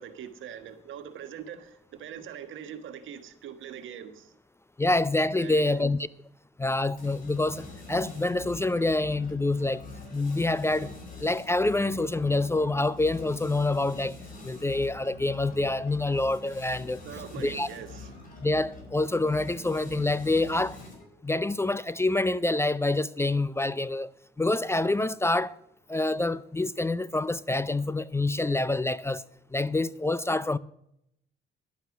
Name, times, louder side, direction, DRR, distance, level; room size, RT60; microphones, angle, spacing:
voice 1, 0.0-4.3 5.4-5.8 17.0-18.3, right 9 dB, 80° right, 1.5 m, -42 dB
voice 2, 4.8-6.0 6.6-9.9 10.1-10.9 11.2-14.1 14.4-17.0 17.4-17.7 18.4-20.8 21.2-24.1 24.4-25.6 25.9-29.2 29.5-30.6, left 2 dB, 15° left, 0.4 m, -26 dB
sound 1, 7.0-21.2, left 3 dB, 45° left, 5.5 m, -45 dB
11.5 x 8.9 x 6.0 m
cardioid pair, 90°, 20 cm